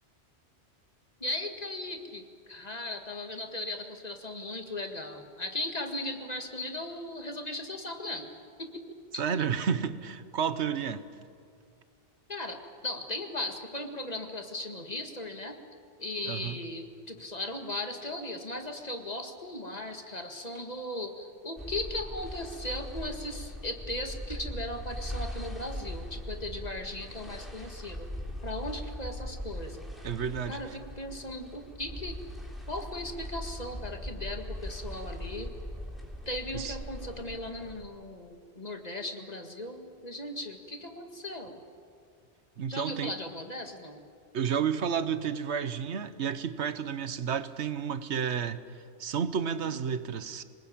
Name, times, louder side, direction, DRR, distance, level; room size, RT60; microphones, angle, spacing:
voice 1, 1.2-8.3 8.6-9.0 12.3-15.6 16.0-28.1 28.4-29.9 30.5-32.2 32.7-35.5 36.3-41.6 42.7-44.0 49.6-49.7, left 1 dB, 35° left, 2.0 m, -37 dB
voice 2, 9.2-11.1 16.2-16.6 30.0-30.8 36.5-36.8 42.6-43.1 44.3-48.6 49.0-50.4, right 7 dB, 80° right, 1.2 m, -31 dB
sound 1, 21.6-37.8, equal, ahead, 3.3 m, -40 dB
27.0 x 20.0 x 8.7 m
omnidirectional pair, 1.1 m